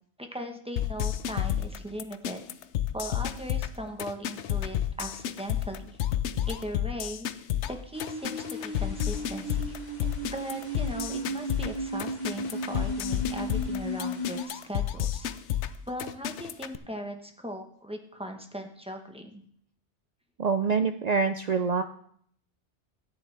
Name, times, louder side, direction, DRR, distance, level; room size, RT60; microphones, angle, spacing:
voice 1, 0.2-2.4 2.9-6.0 6.5-7.3 7.7-9.7 10.0-15.3 15.9-19.4, equal, 5° right, 3 dB, 0.9 m, -39 dB
sound 1, 0.8-16.8, left 11 dB, 75° left, 0.9 m, -31 dB
sound 2, 7.9-14.4, right 1 dB, 40° left, 1.5 m, -35 dB
voice 2, 20.4-21.8, right 5 dB, 65° right, 9 dB, 0.4 m, -25 dB
13.5 x 9.4 x 3.3 m, 0.63 s
omnidirectional pair, 1.2 m